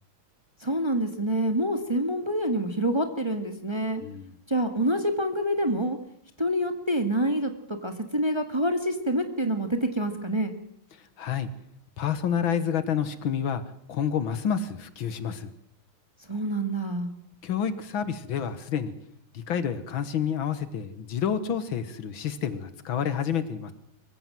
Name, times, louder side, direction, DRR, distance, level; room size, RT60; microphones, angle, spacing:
voice 1, 0.6-4.0 4.5-6.0 6.4-10.5 16.3-17.1, right 1 dB, 15° right, 6 dB, 1.6 m, -27 dB
voice 2, 4.0-4.3 11.0-11.5 12.0-13.6 13.9-15.5 17.4-18.9 19.3-23.7, left 8 dB, 75° left, 13 dB, 2.1 m, -29 dB
24.0 x 15.5 x 7.7 m, 0.71 s
omnidirectional pair, 2.3 m